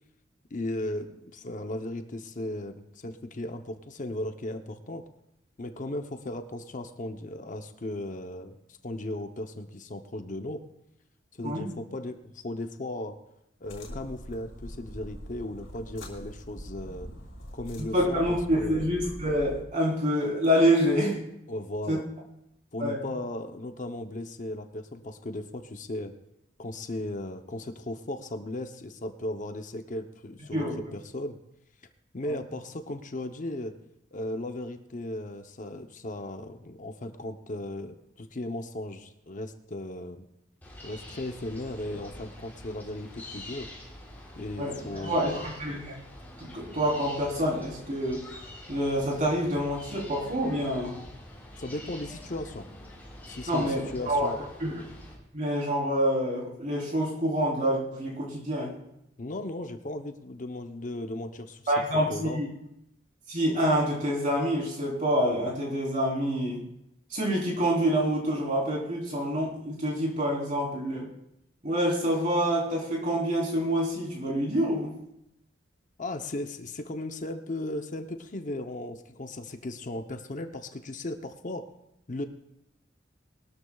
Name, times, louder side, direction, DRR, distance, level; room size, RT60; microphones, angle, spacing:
voice 1, 0.5-5.0 5.6-8.6 8.8-10.6 11.4-13.2 13.6-17.1 17.5-18.2 18.6-18.9 21.5-22.0 22.7-26.1 26.6-30.7 30.9-31.4 32.1-33.7 34.1-40.3 40.8-43.7 44.4-45.5 51.6-52.7 53.3-54.4 59.2-61.7 62.1-62.4 76.0-81.7 82.1-82.3, left 1 dB, 40° left, 7 dB, 0.7 m, -36 dB
voice 2, 11.4-11.7 17.8-21.2 21.9-22.0 22.8-23.0 30.5-30.8 44.6-45.9 46.4-48.3 48.7-51.0 53.5-54.8 55.3-58.7 61.7-62.5 63.3-66.6 67.1-71.1 71.6-74.9, equal, 40° right, -3 dB, 3.7 m, -27 dB
sound 1, 13.6-19.6, equal, 85° left, 3.0 m, -43 dB
sound 2, 40.6-55.1, left 1 dB, 10° left, 3.5 m, -46 dB
21.5 x 13.0 x 2.3 m, 0.81 s
head